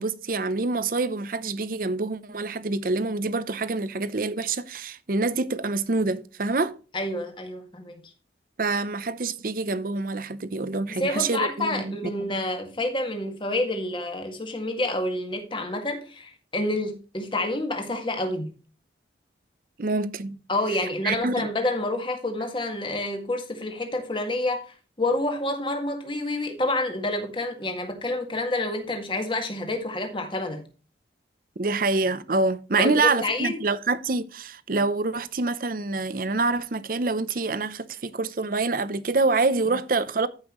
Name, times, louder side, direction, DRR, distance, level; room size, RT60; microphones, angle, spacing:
voice 1, 0.0-6.8 8.6-12.1 19.8-20.4 21.0-21.5 31.6-40.3, right 3 dB, 50° right, 0.7 m, -26 dB
voice 2, 6.9-8.0 10.9-18.5 20.5-24.6 25.0-30.7 32.8-33.6, left 2 dB, 25° left, 1.8 m, -28 dB
14.0 x 5.7 x 3.1 m
head